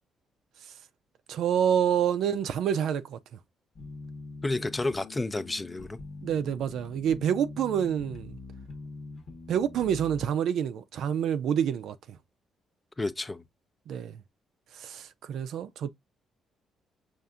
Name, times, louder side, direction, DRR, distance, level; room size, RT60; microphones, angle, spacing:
voice 1, 1.3-3.2 6.2-8.3 9.5-12.2 13.9-14.2 14.8-15.9, right 9 dB, 75° right, 0.4 m, -27 dB
sound 1, 3.8-10.3, left 3 dB, 60° left, 1.0 m, -43 dB
voice 2, 4.4-6.0 13.0-13.4, left 2 dB, 20° left, 0.4 m, -30 dB
5.5 x 2.5 x 2.4 m
cardioid pair, 90°, 0 cm